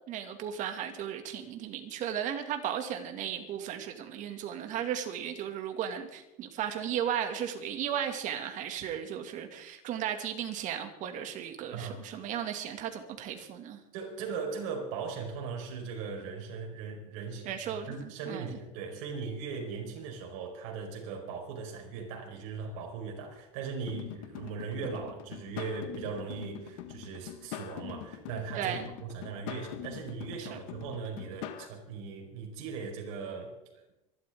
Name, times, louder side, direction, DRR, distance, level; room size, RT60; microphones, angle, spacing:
voice 1, 0.1-13.8 17.4-18.6 28.5-28.9 30.4-30.6, right 9 dB, 45° right, 2.3 m, -35 dB
voice 2, 11.7-12.1 13.9-33.9, right 5 dB, 65° right, 4.8 m, -39 dB
sound 1, 23.9-31.7, left 12 dB, 70° left, 1.7 m, -43 dB
25.5 x 12.0 x 3.7 m
supercardioid pair, 120°, 18 cm